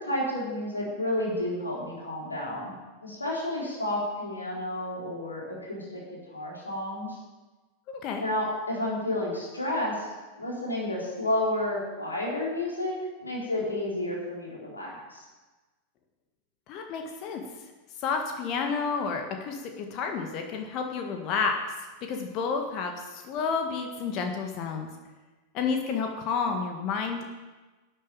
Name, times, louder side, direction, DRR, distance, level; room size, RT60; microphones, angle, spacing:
voice 1, 0.0-2.7 3.0-6.0 6.3-7.2 8.2-10.1 10.4-12.9 13.2-15.2, left 1 dB, 80° left, -3 dB, 3.9 m, -31 dB
voice 2, 7.9-8.2 16.7-17.4 18.0-21.5 22.1-24.9 25.5-27.2, left 5 dB, 40° left, 3 dB, 1.7 m, -30 dB
12.0 x 8.6 x 7.4 m, 1.2 s
figure-of-eight pair, 90°, 0 cm